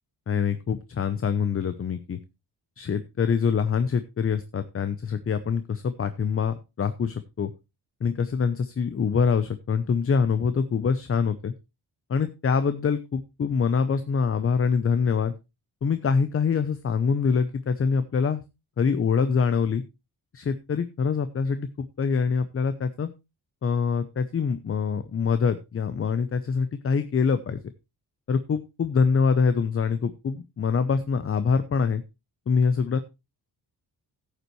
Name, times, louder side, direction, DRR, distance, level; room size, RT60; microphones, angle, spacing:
voice 1, 0.3-2.2 2.8-7.5 8.0-11.5 12.1-15.3 15.8-18.4 18.8-19.8 20.3-23.1 23.6-27.6 28.3-32.0 32.5-33.0, left 5 dB, 35° left, 12 dB, 0.7 m, -25 dB
14.5 x 8.2 x 3.1 m, 0.25 s
wide cardioid pair, 135°, 39 cm